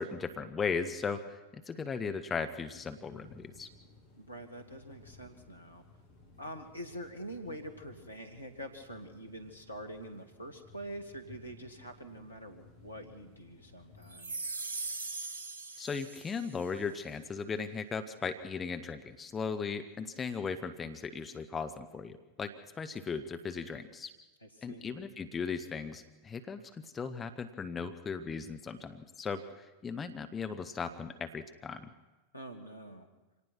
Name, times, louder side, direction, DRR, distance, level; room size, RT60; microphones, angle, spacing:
voice 1, 0.0-3.7 15.8-24.1 24.6-31.9, left 5 dB, 20° left, 9 dB, 1.2 m, -37 dB
sound 1, 2.7-14.1, left 2 dB, 50° left, 7.8 m, -59 dB
voice 2, 4.1-5.8 6.4-14.4 24.4-25.0 32.3-33.1, equal, 85° left, 6 dB, 2.4 m, -45 dB
sound 2, 14.1-16.6, right 3 dB, 60° right, 2.3 m, -40 dB
26.0 x 18.5 x 6.1 m, 1.1 s
figure-of-eight pair, 90°, 0 cm